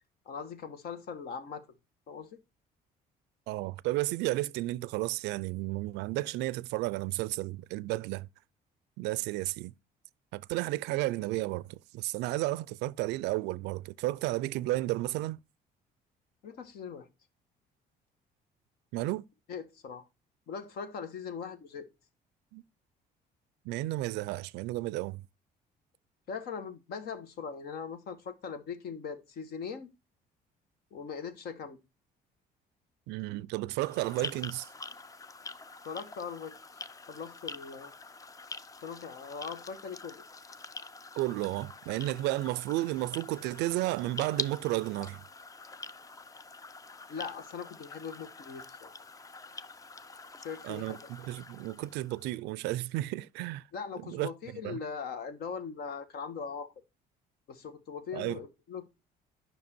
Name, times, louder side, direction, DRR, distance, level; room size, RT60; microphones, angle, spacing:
voice 1, 0.2-1.7 2.1-2.3 16.4-17.1 19.5-20.0 20.5-21.9 26.3-29.9 30.9-31.8 35.8-36.5 37.1-37.9 38.8-40.2 47.1-49.0 50.4-51.0 53.7-56.7 57.5-58.9, left 6 dB, 70° left, 1.4 m, -40 dB
voice 2, 3.5-8.3 9.0-9.7 10.3-15.4 18.9-19.3 22.5-22.6 23.6-25.2 33.1-34.7 41.2-45.2 50.6-53.7 54.0-54.8 58.1-58.4, right 18 dB, 90° right, 0.4 m, -33 dB
sound 1, 33.8-52.3, left 3 dB, 20° left, 0.5 m, -45 dB
9.5 x 5.7 x 4.4 m
cardioid pair, 110°, 17 cm